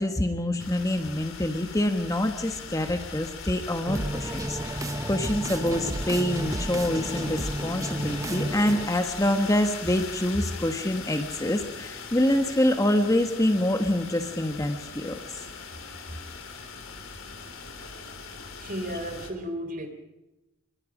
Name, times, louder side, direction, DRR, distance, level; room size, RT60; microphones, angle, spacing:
voice 1, 0.0-15.2, left 1 dB, 15° left, 6 dB, 1.3 m, -26 dB
sound 1, 0.6-19.3, left 5 dB, 75° left, 3.4 m, -40 dB
sound 2, 3.9-8.9, right 1 dB, 15° right, 0.7 m, -32 dB
voice 2, 18.6-19.9, equal, 40° right, 7 dB, 3.4 m, -33 dB
26.5 x 23.5 x 5.0 m, 1.0 s
head